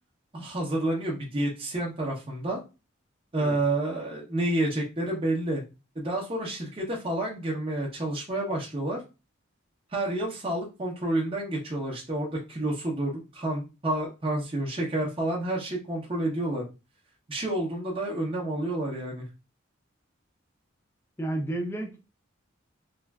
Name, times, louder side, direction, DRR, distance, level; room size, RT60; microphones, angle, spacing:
voice 1, 0.3-2.7 3.3-5.6 6.0-9.0 9.9-16.6 17.3-19.2, right 1 dB, 25° right, 0.8 m, -29 dB
voice 2, 21.2-22.0, right 1 dB, 10° left, 0.5 m, -31 dB
3.3 x 2.5 x 2.2 m
head